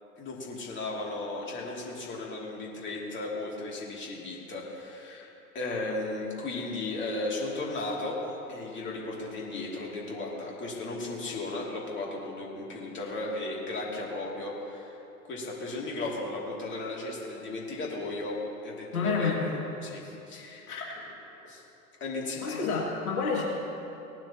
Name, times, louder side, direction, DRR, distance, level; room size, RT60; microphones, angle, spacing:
voice 1, 0.2-15.0 15.2-19.5 19.8-20.7 21.4-21.6 22.0-22.8, left 2 dB, 25° left, -3 dB, 2.6 m, -35 dB
voice 2, 18.9-19.5 20.7-20.8 22.4-23.4, left 4 dB, 70° left, -3 dB, 2.4 m, -29 dB
18.5 x 12.0 x 2.9 m, 2.8 s
figure-of-eight pair, 90°, 44 cm